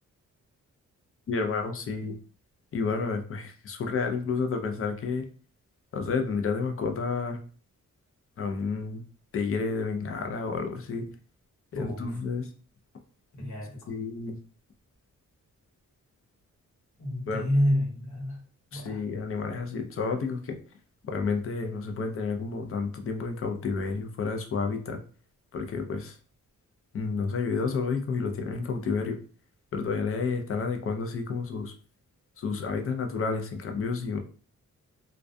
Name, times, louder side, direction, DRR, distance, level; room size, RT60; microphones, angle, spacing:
voice 1, 1.3-2.2 2.7-5.3 5.9-7.4 8.4-9.0 9.3-11.1 11.7-12.5 13.9-14.4 17.3-17.5 18.7-20.6 21.0-25.0 25.5-26.2 26.9-29.2 29.7-31.7 32.4-34.2, left 4 dB, 45° left, 5 dB, 0.5 m, -30 dB
voice 2, 11.7-12.2 13.3-13.9 17.0-18.4 18.7-19.0, equal, 65° left, -2 dB, 1.1 m, -29 dB
2.3 x 2.2 x 2.5 m, 0.41 s
wide cardioid pair, 115°, 31 cm